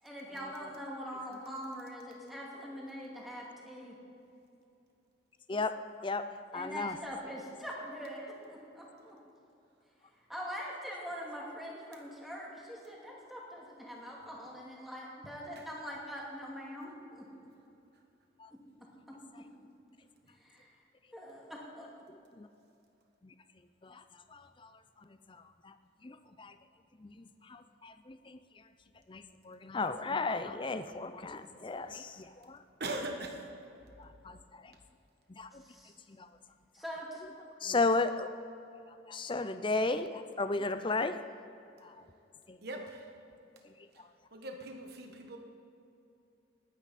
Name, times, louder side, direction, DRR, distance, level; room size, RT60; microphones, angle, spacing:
voice 1, 0.0-4.0 6.5-9.2 10.3-17.3 20.4-20.7 21.1-21.9 35.6-36.0 36.7-37.2, equal, ahead, -4 dB, 2.3 m, -43 dB
voice 2, 5.5-7.0 18.4-18.5 22.3-22.5 23.2-23.3 23.8-24.0 24.3-24.7 25.3-25.8 26.0-26.6 27.0-28.4 29.1-32.6 34.0-34.7 35.3-35.6 36.1-36.3 37.6-38.3 39.1-41.2 41.8-42.0 42.5-42.6 43.6-44.1, left 3 dB, 25° left, 10 dB, 0.5 m, -35 dB
voice 3, 32.8-33.4 42.6-43.1 44.3-45.4, right 2 dB, 50° right, 3 dB, 1.4 m, -40 dB
19.5 x 9.4 x 4.2 m, 2.8 s
head